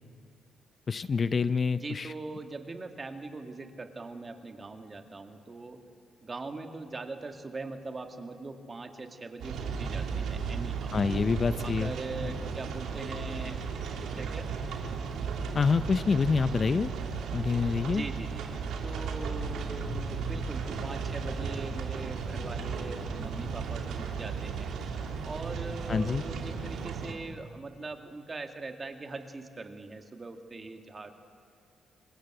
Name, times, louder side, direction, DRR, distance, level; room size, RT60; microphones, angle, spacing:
voice 1, 0.9-2.1 10.9-11.9 12.2-12.3 15.5-16.9 17.3-18.0 25.9-26.2, left 5 dB, 40° left, 14 dB, 0.5 m, -27 dB
voice 2, 1.7-5.8 6.2-11.0 11.6-13.6 14.2-14.5 17.8-18.4 18.8-24.7 25.2-31.1, right 3 dB, 30° right, 5 dB, 2.1 m, -41 dB
sound 1, 9.4-27.1, right 5 dB, 80° right, 2.7 m, -35 dB
26.0 x 20.5 x 7.9 m, 2.3 s
cardioid pair, 90°, 0 cm